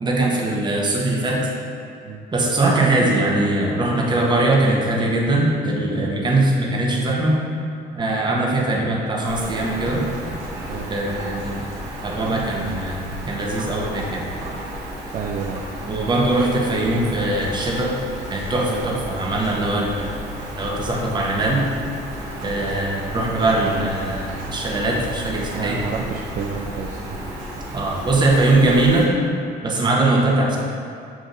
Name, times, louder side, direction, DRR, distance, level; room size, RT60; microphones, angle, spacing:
voice 1, 0.0-1.4 2.3-7.4 8.0-10.0 10.9-11.7 12.0-14.3 15.9-17.9 18.3-20.1 20.6-21.6 22.4-25.8 27.7-29.1 29.6-30.6, right 2 dB, 25° right, -3 dB, 0.8 m, -21 dB
Rain, 9.2-29.1, equal, 90° right, 1.0 m, -33 dB
voice 2, 15.1-15.6 18.7-18.8 25.5-27.0 29.8-29.9, right 6 dB, 50° right, -1 dB, 0.4 m, -30 dB
7.3 x 2.5 x 2.6 m, 2.5 s
cardioid pair, 110°, 17 cm